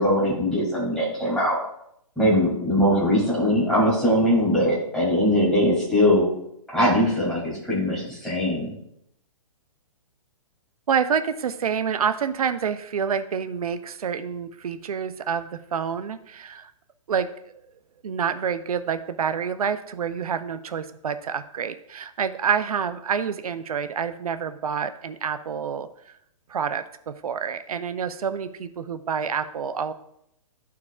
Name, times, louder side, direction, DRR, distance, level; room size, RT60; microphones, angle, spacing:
voice 1, 0.0-1.6 2.2-6.2 6.7-8.7, equal, ahead, -8 dB, 2.7 m, -21 dB
voice 2, 10.9-16.7 17.1-17.3 18.0-25.9 26.5-29.9, right 7 dB, 90° right, 10 dB, 0.6 m, -27 dB
13.0 x 4.7 x 2.4 m, 0.75 s
hypercardioid pair, 160°, 18 cm